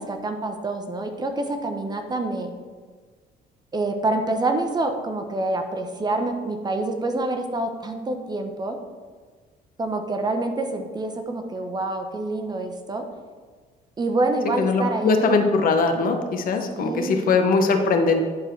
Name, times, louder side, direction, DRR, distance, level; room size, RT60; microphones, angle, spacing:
voice 1, 0.0-2.5 3.7-8.8 9.8-13.1 14.0-15.4 16.7-17.4, right 2 dB, 25° right, 6 dB, 0.9 m, -27 dB
voice 2, 14.6-18.2, left 4 dB, 55° left, 5 dB, 1.0 m, -21 dB
10.5 x 4.5 x 4.5 m, 1.5 s
cardioid pair, 110°, 17 cm